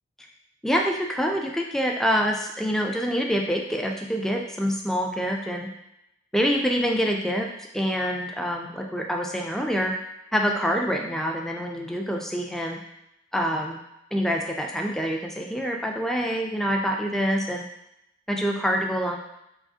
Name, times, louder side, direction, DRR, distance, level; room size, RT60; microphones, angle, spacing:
voice 1, 0.6-5.7 6.3-9.9 10.3-12.8 13.3-13.8 14.1-17.6 18.3-19.2, equal, ahead, 1 dB, 0.3 m, -26 dB
4.6 x 2.4 x 2.7 m, 0.85 s
head